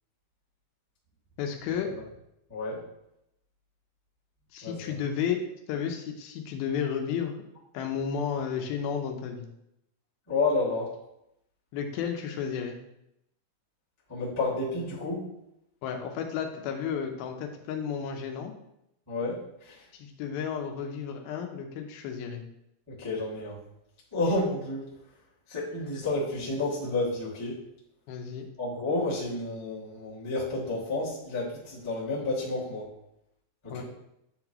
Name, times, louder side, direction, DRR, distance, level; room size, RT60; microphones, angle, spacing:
voice 1, 1.4-1.9 4.5-5.4 5.7-7.4 7.7-9.5 11.7-12.8 15.8-18.5 19.9-22.4 28.1-28.5 33.7-33.8, left 7 dB, 85° left, 4 dB, 2.6 m, -32 dB
voice 2, 2.5-2.8 4.6-4.9 10.3-10.9 14.1-15.3 19.1-19.8 22.9-23.6 24.1-24.9 25.5-27.6 28.6-32.9 33.6-33.8, left 2 dB, 10° left, -9 dB, 0.7 m, -30 dB
9.5 x 3.9 x 2.9 m, 0.81 s
omnidirectional pair, 4.2 m